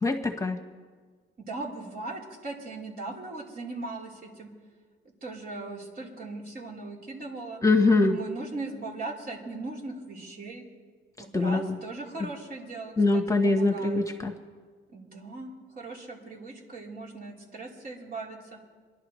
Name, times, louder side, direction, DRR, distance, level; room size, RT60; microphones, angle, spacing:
voice 1, 0.0-0.6 7.6-8.2 11.3-11.8 13.0-14.3, left 3 dB, 15° left, 5 dB, 1.2 m, -23 dB
voice 2, 1.4-4.5 5.2-7.6 8.0-10.7 11.2-14.0 14.9-18.6, right 3 dB, 45° right, -3 dB, 3.7 m, -39 dB
27.5 x 11.5 x 3.1 m, 1.5 s
cardioid pair, 90°, 20 cm